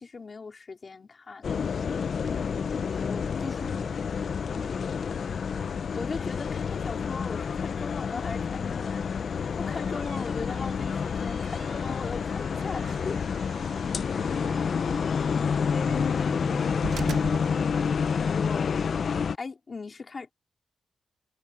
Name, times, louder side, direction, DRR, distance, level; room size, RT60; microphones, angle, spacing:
voice 1, 0.0-1.5 3.1-3.8 4.5-4.7 5.9-13.2 15.2-15.7 18.3-18.9 19.3-20.3, left 4 dB, 35° left, 4.1 m, -39 dB
sound 1, 1.4-19.4, left 6 dB, 55° left, 0.6 m, -29 dB
voice 2, 2.3-4.9, equal, ahead, 2.8 m, -44 dB
sound 2, 9.4-18.3, right 7 dB, 80° right, 1.4 m, -44 dB
wide cardioid pair, 165°, 0 cm